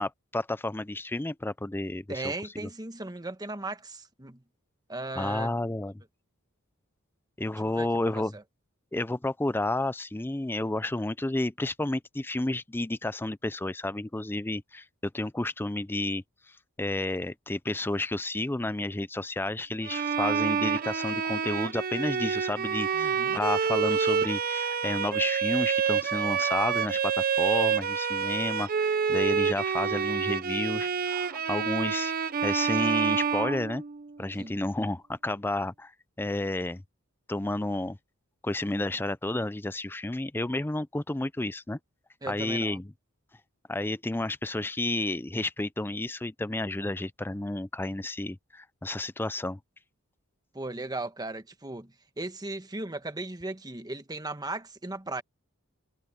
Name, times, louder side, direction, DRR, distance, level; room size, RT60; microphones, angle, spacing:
voice 1, 0.0-2.3 2.6-2.7 5.2-5.9 7.4-8.3 8.9-14.9 15.1-16.2 16.8-32.1 32.4-33.8 34.2-35.9 36.2-36.8 37.3-38.0 38.4-41.8 42.3-42.9 43.7-49.6, left 2 dB, 10° left, 0.5 m, -31 dB
voice 2, 2.1-4.4 4.9-5.6 7.6-8.4 22.9-23.4 34.4-34.6 42.2-42.8 50.5-55.2, right 2 dB, 20° right, 1.4 m, -37 dB
Bowed string instrument, 19.9-34.1, right 6 dB, 45° right, 0.6 m, -28 dB
head